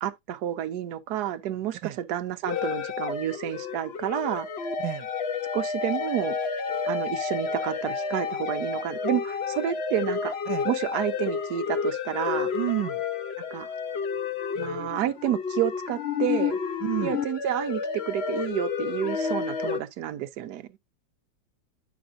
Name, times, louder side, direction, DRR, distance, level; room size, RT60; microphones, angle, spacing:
voice 1, 0.0-4.5 5.5-6.4 6.9-10.4 10.6-12.5 13.5-13.7 14.6-16.6 17.0-20.7, right 11 dB, 70° right, 1.2 m, -30 dB
sound 1, 2.5-19.8, left 6 dB, 55° left, 0.7 m, -30 dB
voice 2, 12.5-13.0 14.6-14.8 16.8-17.1, right 15 dB, 85° right, 1.3 m, -30 dB
9.4 x 6.0 x 2.5 m
omnidirectional pair, 1.9 m